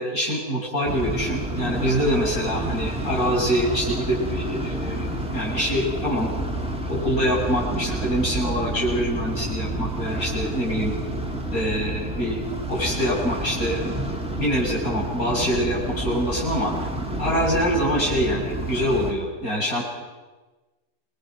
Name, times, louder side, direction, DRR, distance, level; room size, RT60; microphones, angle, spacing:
voice 1, 0.0-6.3 6.8-10.9 11.5-12.4 12.7-13.8 14.3-16.7 17.2-19.8, equal, 70° left, -4 dB, 8.0 m, -25 dB
sound 1, 0.8-19.1, right 1 dB, 5° right, 2.5 m, -29 dB
28.0 x 22.5 x 6.3 m, 1.2 s
omnidirectional pair, 1.6 m